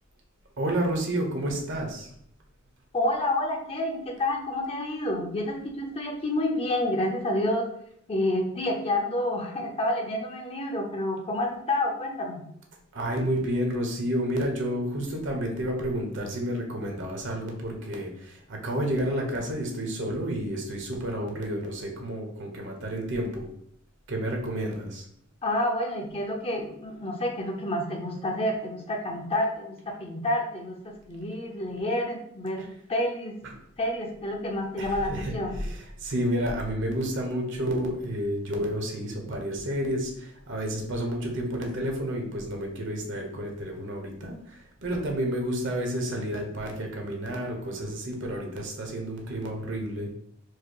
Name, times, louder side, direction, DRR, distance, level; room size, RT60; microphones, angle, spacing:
voice 1, 0.6-2.1 12.9-23.5 24.1-25.0 33.4-33.5 34.8-35.7 36.0-50.1, equal, 65° right, 1 dB, 1.1 m, -30 dB
voice 2, 2.9-7.7 8.1-12.4 25.4-32.6 32.9-33.3 33.8-35.5, left 1 dB, 30° left, 1 dB, 0.8 m, -29 dB
4.7 x 2.1 x 4.7 m, 0.67 s
head